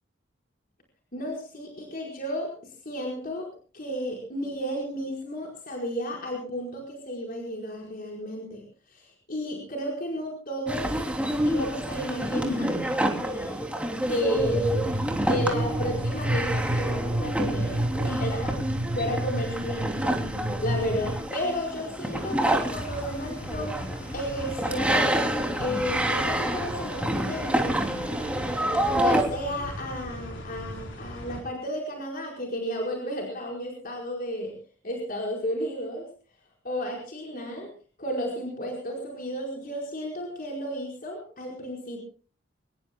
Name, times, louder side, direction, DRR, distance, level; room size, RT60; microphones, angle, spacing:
voice 1, 1.1-3.5 3.7-8.6 8.9-10.9 11.4-12.9 13.2-13.6 14.1-14.9 15.3-20.2 20.6-23.8 24.1-25.1 25.6-27.8 28.9-34.5 34.8-36.0 36.6-37.7 38.0-42.0, equal, 50° left, -1 dB, 4.9 m, -32 dB
sound 1, 10.7-29.2, right 1 dB, 5° right, 3.0 m, -28 dB
sound 2, 14.4-21.2, right 1 dB, 45° right, 1.4 m, -30 dB
sound 3, 22.1-31.4, equal, 70° left, 4.2 m, -39 dB
24.5 x 20.5 x 2.3 m, 0.39 s
head